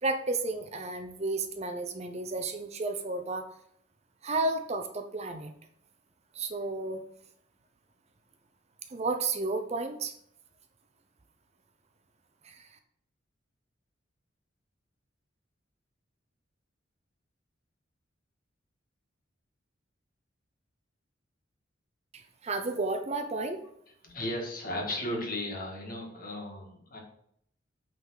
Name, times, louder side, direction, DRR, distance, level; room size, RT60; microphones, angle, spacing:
voice 1, 0.0-3.5 4.2-5.5 6.3-7.0 8.9-10.1 12.4-12.8 22.1-23.6, right 3 dB, 35° right, 7 dB, 0.6 m, -32 dB
voice 2, 24.0-27.0, left 1 dB, 45° left, 0 dB, 1.8 m, -35 dB
8.4 x 3.8 x 4.7 m, 0.69 s
head